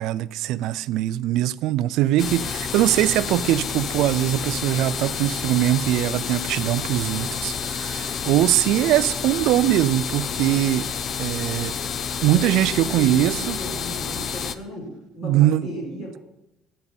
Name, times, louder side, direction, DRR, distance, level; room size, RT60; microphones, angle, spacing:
voice 1, 0.0-10.9 11.2-11.8 12.2-13.6 15.2-15.7, right 13 dB, 65° right, 0.3 m, -22 dB
sound 1, 2.2-14.6, left 6 dB, 35° left, 0.5 m, -29 dB
voice 2, 12.3-16.2, equal, 50° left, 5.4 m, -35 dB
11.0 x 6.6 x 8.6 m
cardioid pair, 175°, 0 cm